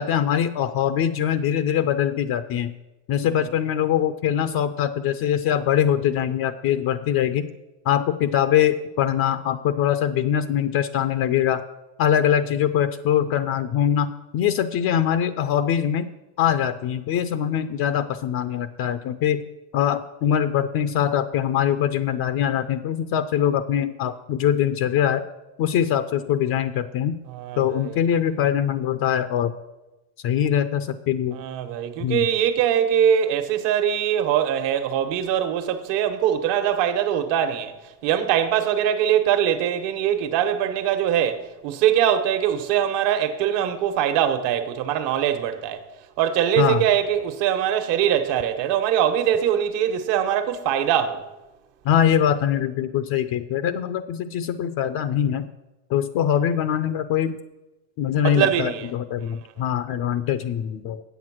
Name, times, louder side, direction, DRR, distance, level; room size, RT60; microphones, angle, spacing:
voice 1, 0.0-2.7 3.1-7.5 7.9-11.6 12.0-16.1 16.4-19.5 19.7-25.2 25.6-27.2 27.6-29.5 30.2-31.4 32.0-32.3 46.6-46.8 51.8-55.5 55.9-57.4 58.0-61.0, left 9 dB, 50° left, 0.6 m, -23 dB
voice 2, 27.3-28.0 31.3-37.7 38.0-45.8 46.2-51.2 58.2-58.9, right 9 dB, 60° right, 1.3 m, -22 dB
8.2 x 7.9 x 6.2 m
supercardioid pair, 120°, 49 cm